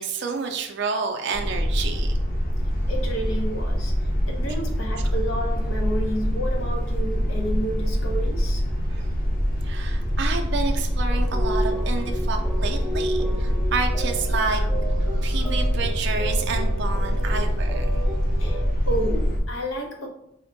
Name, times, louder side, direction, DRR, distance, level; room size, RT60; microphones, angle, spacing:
voice 1, 0.0-2.2 8.9-9.0 9.6-14.6 15.2-18.0, right 4 dB, 55° right, 4 dB, 0.4 m, -29 dB
sound 1, 1.3-19.4, equal, 45° left, 0.8 m, -24 dB
voice 2, 2.8-8.6 14.3-14.7 15.0-15.7 18.4-20.1, equal, 80° left, 1 dB, 0.8 m, -31 dB
sound 2, 11.1-18.7, right 1 dB, ahead, 0.6 m, -34 dB
4.2 x 2.1 x 3.9 m, 0.79 s
head